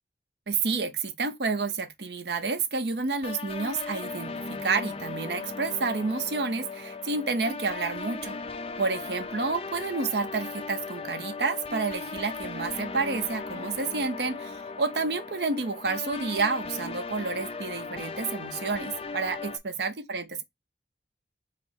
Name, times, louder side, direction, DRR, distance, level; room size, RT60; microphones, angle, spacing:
voice 1, 0.5-8.4 8.8-20.4, right 4 dB, 70° right, 0.7 m, -30 dB
sound 1, 3.2-19.6, left 4 dB, 30° left, 0.5 m, -37 dB
5.0 x 2.0 x 4.1 m
head